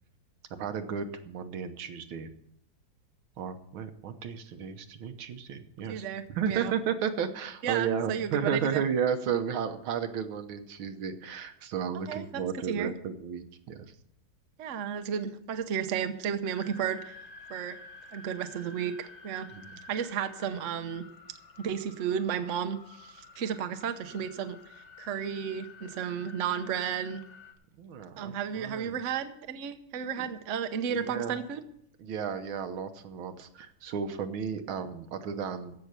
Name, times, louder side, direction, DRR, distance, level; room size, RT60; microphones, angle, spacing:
voice 1, 0.5-2.3 3.4-13.9 19.5-19.8 27.7-29.0 30.2-30.3 30.9-31.4 32.0-35.7, right 7 dB, 80° right, 8 dB, 1.8 m, -33 dB
voice 2, 5.9-6.7 7.6-8.8 12.1-12.4 12.7-12.9 14.6-17.2 17.5-17.8 18.1-19.5 19.9-21.0 21.6-27.2 28.2-31.6, right 8 dB, 50° right, 8 dB, 0.9 m, -33 dB
sound 1, 16.4-27.5, left 3 dB, 35° left, 1.7 m, -51 dB
15.0 x 5.9 x 8.1 m, 0.73 s
omnidirectional pair, 2.2 m